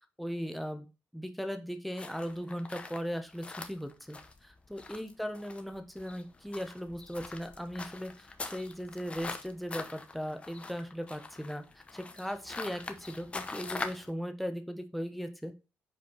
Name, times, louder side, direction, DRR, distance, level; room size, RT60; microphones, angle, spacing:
voice 1, 0.2-0.9 1.1-15.5, equal, ahead, 7 dB, 1.0 m, -38 dB
sound 1, 1.9-14.1, left 3 dB, 25° left, 0.8 m, -43 dB
5.3 x 4.3 x 5.5 m, 0.30 s
cardioid pair, 110°, 5 cm